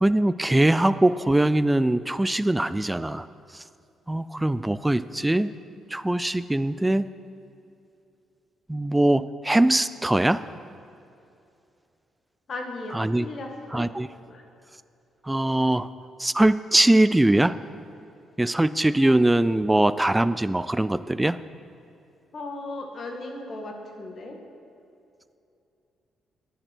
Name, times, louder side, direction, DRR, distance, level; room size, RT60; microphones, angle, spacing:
voice 1, 0.0-3.3 3.5-3.6 4.1-5.5 5.9-7.1 8.7-10.4 12.9-13.3 13.7-14.1 15.2-15.9 16.2-17.5 18.4-21.4, right 1 dB, 10° right, 14 dB, 0.3 m, -22 dB
voice 2, 12.5-13.8 14.3-14.4 19.0-19.2 22.3-24.4, left 2 dB, 50° left, 3 dB, 1.6 m, -36 dB
10.5 x 10.5 x 4.5 m, 2.7 s
cardioid pair, 90°, 0 cm